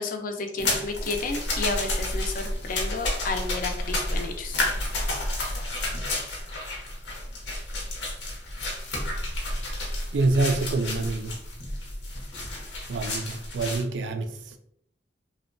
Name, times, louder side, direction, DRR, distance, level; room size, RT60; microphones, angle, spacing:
voice 1, 0.0-4.6, left 3 dB, 50° left, 0.4 m, -31 dB
sound 1, 0.6-13.8, left 1 dB, 80° left, 0.7 m, -31 dB
voice 2, 10.1-11.4 12.9-14.4, right 2 dB, 85° right, 0.3 m, -26 dB
2.8 x 2.1 x 2.5 m
head